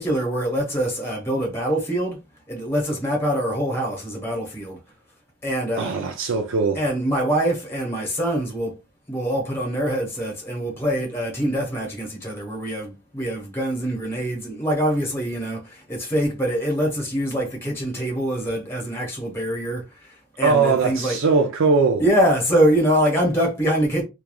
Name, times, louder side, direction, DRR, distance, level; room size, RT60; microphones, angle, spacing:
voice 1, 0.0-2.2 2.5-4.8 5.4-6.0 6.7-8.8 9.1-21.2 22.0-24.0, equal, 10° left, 0.9 m, -24 dB
voice 2, 5.8-6.8 20.4-22.0, right 4 dB, 65° right, 0.4 m, -20 dB
3.1 x 2.3 x 2.3 m
head